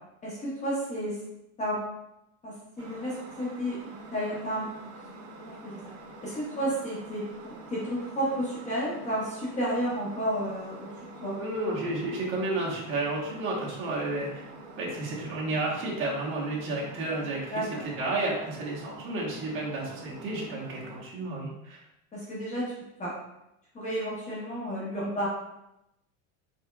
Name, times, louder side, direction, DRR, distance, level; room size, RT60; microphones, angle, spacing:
voice 1, 0.2-1.2 1.6-1.8 2.4-4.7 5.4-5.8 6.2-10.9 11.2-11.4 17.5-17.8 22.1-23.1 23.7-25.3, equal, 20° left, -6 dB, 0.8 m, -32 dB
sound 1, 2.8-21.0, right 2 dB, 85° right, 1.2 m, -46 dB
voice 2, 11.3-14.4 14.8-17.6 18.0-21.8, right 2 dB, 30° right, -4 dB, 1.2 m, -31 dB
4.4 x 4.2 x 2.3 m, 0.86 s
supercardioid pair, 155°, 40 cm